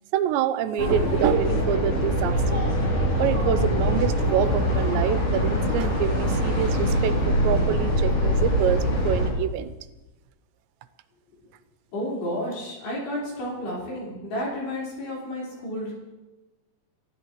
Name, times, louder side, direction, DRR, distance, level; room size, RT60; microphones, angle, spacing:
voice 1, 0.1-2.6 3.2-9.7, right 10 dB, 90° right, 11 dB, 3.0 m, -26 dB
sound 1, 0.8-9.3, equal, 35° left, 4.1 m, -23 dB
voice 2, 11.9-15.9, equal, 70° left, -6 dB, 6.9 m, -31 dB
27.5 x 13.5 x 3.2 m, 1.1 s
omnidirectional pair, 5.0 m